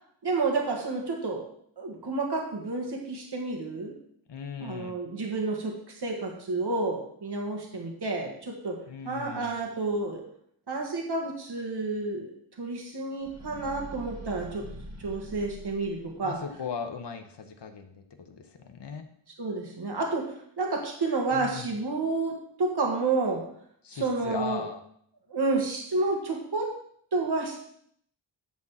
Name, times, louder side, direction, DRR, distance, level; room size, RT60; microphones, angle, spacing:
voice 1, 0.2-1.4 1.8-4.0 4.6-8.8 9.1-10.2 10.7-14.7 15.0-16.4 19.4-23.5 23.9-24.6 25.3-26.8 27.1-27.7, right 3 dB, 60° right, 0 dB, 1.8 m, -30 dB
voice 2, 4.3-4.9 8.9-9.6 16.2-19.1 21.3-21.7 23.8-24.8, left 5 dB, 65° left, 5 dB, 1.1 m, -38 dB
sound 1, 13.2-16.5, right 2 dB, 35° right, 1.6 m, -44 dB
10.5 x 4.1 x 7.2 m, 0.65 s
wide cardioid pair, 105°, 45 cm